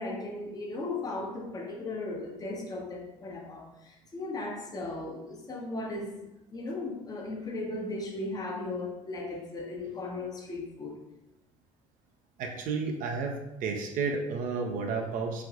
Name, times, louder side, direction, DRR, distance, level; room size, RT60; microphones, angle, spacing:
voice 1, 0.0-11.0, left 2 dB, 20° left, 0 dB, 0.6 m, -37 dB
voice 2, 12.4-15.4, right 4 dB, 50° right, 3 dB, 0.4 m, -32 dB
3.3 x 2.5 x 2.4 m, 0.93 s
figure-of-eight pair, 55°, 17 cm